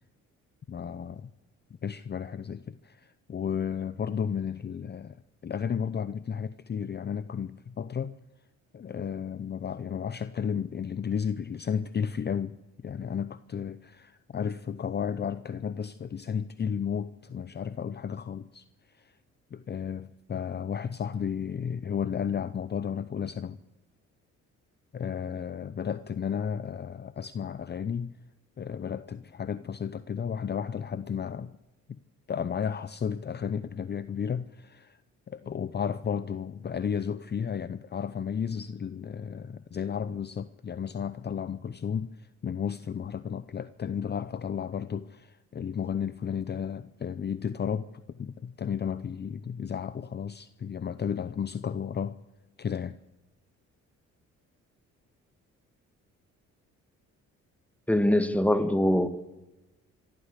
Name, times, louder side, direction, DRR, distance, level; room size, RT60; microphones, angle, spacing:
voice 1, 0.7-1.3 1.8-5.2 5.4-8.2 8.7-12.6 12.8-18.6 18.9-19.1 19.5-23.6 24.9-28.1 28.6-31.5 31.9-32.0 32.3-35.0 35.3-52.2 52.6-53.0, left 7 dB, 35° left, 0.7 m, -33 dB
voice 2, 57.9-59.1, left 1 dB, 5° left, 1.7 m, -23 dB
24.5 x 13.5 x 8.3 m
cardioid pair, 90°, 30 cm